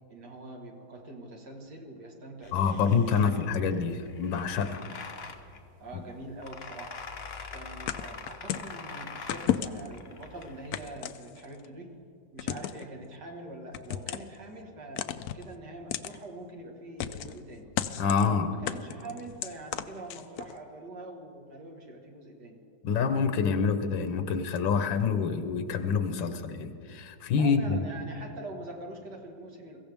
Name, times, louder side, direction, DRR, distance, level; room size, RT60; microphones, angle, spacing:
voice 1, 0.1-3.2 3.6-3.8 5.8-6.9 7.5-12.0 12.3-15.1 15.3-17.7 18.2-22.6 27.4-29.8, right 2 dB, 65° right, 1 dB, 2.3 m, -44 dB
sound 1, 2.4-10.9, left 4 dB, 45° left, 1.0 m, -44 dB
voice 2, 2.5-4.9 18.0-18.5 22.8-27.8, left 6 dB, 90° left, 9 dB, 1.6 m, -27 dB
sound 2, 7.9-8.7 9.3-10.0 10.7-11.7 12.4-12.9 13.7-14.4 15.0-15.5 15.9-16.2 17.0-17.4 17.8-18.3 18.7-20.5, left 10 dB, 70° left, 0.9 m, -33 dB
22.5 x 15.5 x 3.5 m, 2.5 s
omnidirectional pair, 2.0 m